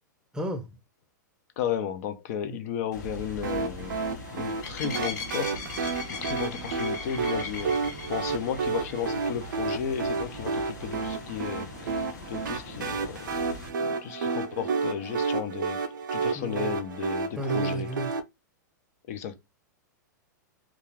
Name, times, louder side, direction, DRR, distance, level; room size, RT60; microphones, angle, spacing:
voice 1, 0.3-0.8 2.5-2.6 16.3-16.8 17.3-18.2, right 1 dB, 5° right, 0.5 m, -33 dB
voice 2, 1.6-4.0 4.3-5.5 5.8-5.9 6.2-13.3 13.8-15.8 16.1-17.9 19.1-19.3, left 8 dB, 55° left, 0.5 m, -34 dB
sound 1, 2.9-13.7, left 3 dB, 70° left, 1.0 m, -40 dB
sound 2, 3.4-18.2, right 4 dB, 85° right, 0.5 m, -31 dB
2.4 x 2.4 x 3.1 m
hypercardioid pair, 120°, 10 cm